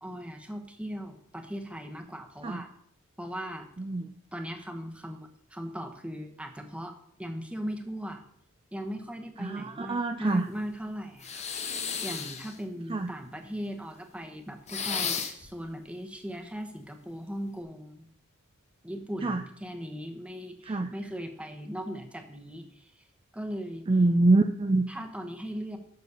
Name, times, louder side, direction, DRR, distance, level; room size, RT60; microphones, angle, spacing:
voice 1, 0.0-2.7 3.2-3.7 4.3-8.2 8.7-18.1 18.8-22.9 23.3-23.9 24.9-25.8, equal, 5° right, 5 dB, 1.0 m, -38 dB
voice 2, 3.8-4.1 9.4-10.5 12.9-13.1 19.2-19.4 20.6-20.9 23.9-24.8, right 2 dB, 25° right, 7 dB, 0.4 m, -25 dB
sound 1, 11.2-12.6 14.7-15.5, left 6 dB, 30° left, 1.0 m, -33 dB
11.5 x 4.1 x 6.8 m, 0.69 s
head